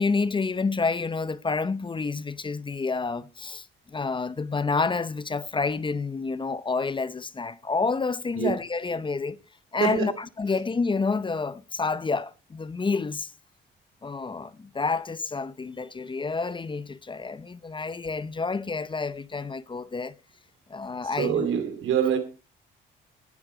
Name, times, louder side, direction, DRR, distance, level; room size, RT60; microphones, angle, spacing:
voice 1, 0.0-9.4 9.7-13.3 14.0-20.1 20.7-21.5, left 4 dB, 25° left, 0.7 m, -29 dB
voice 2, 9.8-10.1 21.2-22.2, right 8 dB, 80° right, 2.6 m, -25 dB
17.5 x 7.9 x 4.7 m
cardioid pair, 90°, 20 cm